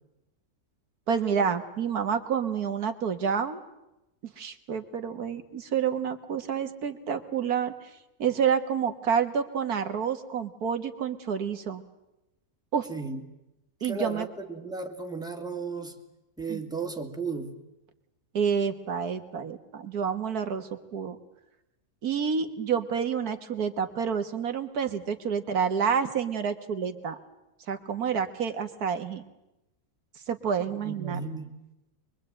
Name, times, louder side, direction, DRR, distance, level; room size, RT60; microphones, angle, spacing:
voice 1, 1.1-3.6 4.2-7.9 8.2-11.8 12.7-12.9 13.8-14.3 16.5-16.6 18.3-21.2 22.0-27.2 27.7-29.2 30.3-31.2, right 7 dB, 85° right, 8 dB, 2.0 m, -29 dB
voice 2, 12.9-13.2 13.8-16.0 16.4-17.5 30.6-31.5, right 4 dB, 5° right, 3 dB, 2.4 m, -35 dB
24.0 x 23.0 x 8.9 m, 0.91 s
omnidirectional pair, 1.6 m